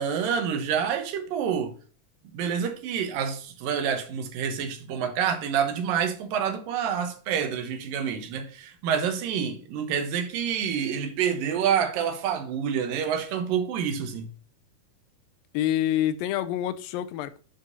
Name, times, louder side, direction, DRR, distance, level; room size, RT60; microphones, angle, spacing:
voice 1, 0.0-1.7 2.3-14.3, right 7 dB, 80° right, 2.7 m, -28 dB
voice 2, 15.5-17.4, left 12 dB, 85° left, 2.4 m, -27 dB
10.5 x 4.9 x 2.7 m
omnidirectional pair, 4.0 m